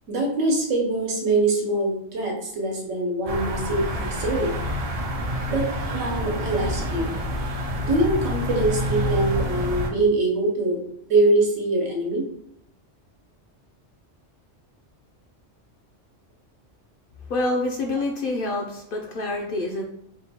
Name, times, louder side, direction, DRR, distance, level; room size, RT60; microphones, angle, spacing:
voice 1, 0.1-4.6 5.5-7.1 7.8-10.8 11.1-12.2, right 2 dB, 80° right, -1 dB, 1.3 m, -23 dB
sound 1, 3.3-9.9, equal, 60° right, 0.4 m, -28 dB
voice 2, 17.3-19.8, left 2 dB, 60° left, 1 dB, 0.6 m, -27 dB
3.6 x 2.2 x 4.1 m, 0.73 s
omnidirectional pair, 1.3 m